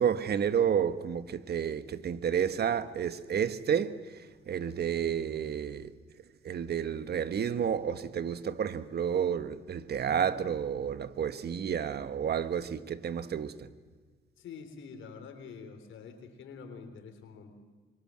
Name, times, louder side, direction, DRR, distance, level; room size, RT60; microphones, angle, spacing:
voice 1, 0.0-3.9 4.5-5.9 6.4-13.7, right 8 dB, 55° right, 1.4 m, -30 dB
voice 2, 14.4-17.5, left 5 dB, 75° left, 3.6 m, -46 dB
26.0 x 23.5 x 7.7 m
cardioid pair, 90°, 20 cm